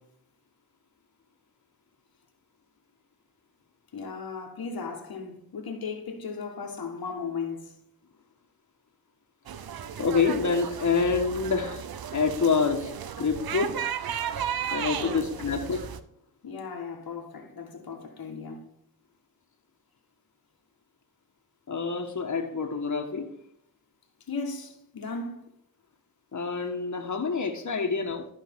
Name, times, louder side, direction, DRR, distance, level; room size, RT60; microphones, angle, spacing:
voice 1, 3.9-7.7 15.0-15.8 16.4-18.7 24.3-25.5, left 4 dB, 85° left, 1.5 m, -36 dB
sound 1, 9.5-16.0, right 8 dB, 85° right, 0.7 m, -34 dB
voice 2, 10.0-11.8 12.1-13.8 14.7-15.9 21.7-23.3 26.3-28.3, left 5 dB, 55° left, 1.4 m, -27 dB
13.0 x 5.5 x 3.6 m
wide cardioid pair, 75°, 35 cm